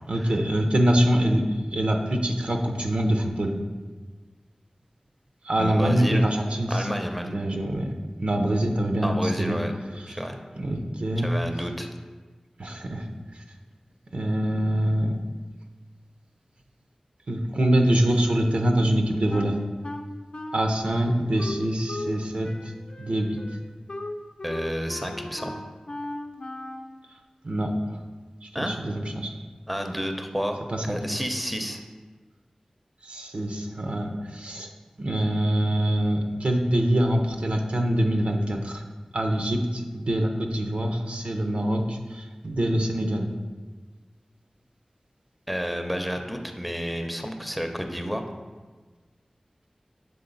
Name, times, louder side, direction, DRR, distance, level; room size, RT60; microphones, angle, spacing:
voice 1, 0.1-1.4 1.7-3.5 5.5-6.7 7.3-7.9 8.2-9.6 10.6-11.3 12.6-13.0 14.1-15.1 17.3-19.6 20.5-22.5 23.0-23.4 27.4-27.7 28.5-29.3 30.7-31.0 33.0-34.7 35.0-38.8 39.1-43.3, right 1 dB, 75° right, 3 dB, 0.6 m, -24 dB
voice 2, 5.6-6.3 6.7-7.3 9.0-9.7 10.1-10.4 11.2-11.9 24.4-25.6 28.5-28.8 29.7-30.6 30.9-31.8 45.5-48.3, equal, ahead, 5 dB, 0.6 m, -30 dB
Wind instrument woodwind instrument, 19.3-22.2 22.4-26.9, left 1 dB, 60° left, 0.5 m, -37 dB
6.9 x 3.7 x 3.8 m, 1.4 s
wide cardioid pair, 55°, 2 cm